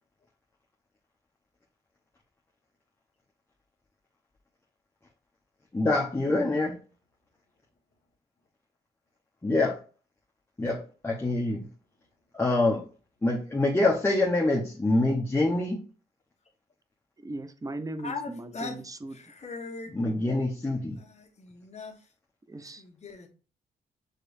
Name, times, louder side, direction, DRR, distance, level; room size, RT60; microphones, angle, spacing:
voice 1, 5.7-6.8 9.4-9.8 10.6-11.7 12.3-12.9 13.2-15.8 19.9-21.0, left 2 dB, 15° left, 1.0 m, -25 dB
voice 2, 17.2-19.2 22.5-22.8, right 2 dB, 20° right, 0.6 m, -38 dB
voice 3, 18.0-18.8 19.1-20.0 21.0-22.0 22.8-23.3, left 4 dB, 40° left, 1.3 m, -40 dB
6.5 x 3.1 x 2.6 m
cardioid pair, 85°, 17 cm